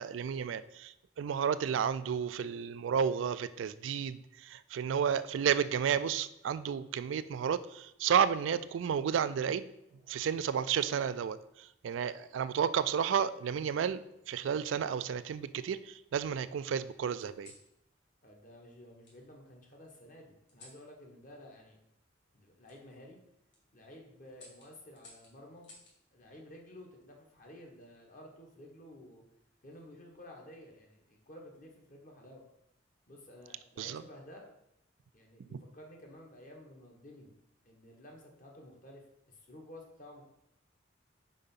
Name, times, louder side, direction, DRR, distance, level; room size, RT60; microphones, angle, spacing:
voice 1, 0.0-9.7 10.1-17.5 33.8-34.0 35.5-35.6, right 7 dB, 75° right, 14 dB, 0.3 m, -32 dB
sound 1, 9.8-10.9 12.0-12.4 13.7-14.4 15.0-15.9 17.2-17.7 19.0-19.2 20.5-20.8 22.6-22.8 23.3-23.6 24.3-26.0 27.5-27.9, left 2 dB, 65° left, 2.0 m, -59 dB
voice 2, 18.2-21.8 22.3-23.2 23.7-25.7 26.1-29.2 29.6-32.4 33.1-34.5 35.1-37.3 37.6-40.2, left 1 dB, 45° left, 1 dB, 1.4 m, -53 dB
5.2 x 4.6 x 5.6 m, 0.82 s
head